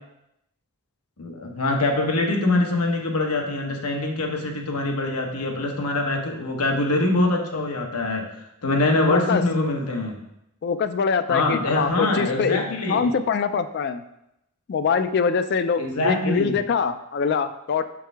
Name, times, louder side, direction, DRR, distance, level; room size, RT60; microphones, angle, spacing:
voice 1, 1.2-8.3 8.6-10.2 11.3-13.1 15.8-16.6, left 2 dB, 90° left, 2 dB, 1.0 m, -24 dB
voice 2, 9.1-9.4 10.6-14.0 14.7-17.8, left 6 dB, 45° left, 11 dB, 0.3 m, -24 dB
6.4 x 4.8 x 3.4 m, 0.83 s
head